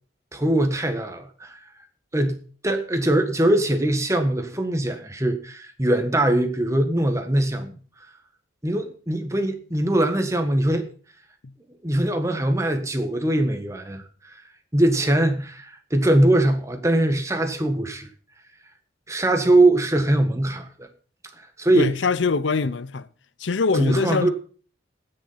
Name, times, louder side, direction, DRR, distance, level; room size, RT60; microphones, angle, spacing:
voice 1, 0.3-1.5 2.1-2.4 2.6-7.8 8.6-10.9 11.8-14.0 14.7-18.1 19.1-20.9 21.6-21.9 23.7-24.3, right 1 dB, 15° right, 1.6 m, -21 dB
voice 2, 21.7-23.1 23.4-24.3, left 4 dB, 85° left, 0.6 m, -23 dB
17.0 x 6.8 x 5.7 m
head